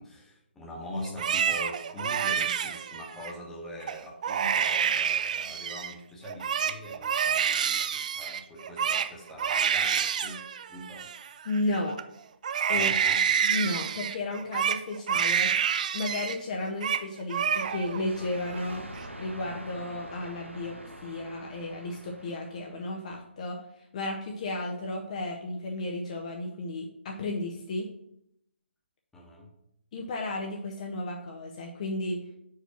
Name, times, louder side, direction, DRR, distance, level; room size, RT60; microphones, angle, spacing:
voice 1, 0.0-11.1 12.7-13.2 29.1-29.5, left 1 dB, 5° left, -3 dB, 1.1 m, -42 dB
Crying sobbing, 1.0-3.3 3.8-4.0 4.2-5.9 6.2-12.0 12.4-16.4 16.6-17.0 17.3-18.0 18.4-19.0, right 8 dB, 40° right, 0.3 m, -28 dB
voice 2, 11.4-12.0 12.7-12.9 13.4-15.6 15.9-18.9 19.2-20.8 21.0-23.6 23.9-27.9 29.9-32.2, left 2 dB, 35° left, 1 dB, 0.6 m, -33 dB
sound 1, 17.5-23.1, right 1 dB, 90° right, 1.0 m, -45 dB
4.7 x 4.4 x 5.8 m, 0.77 s
figure-of-eight pair, 140°, 6 cm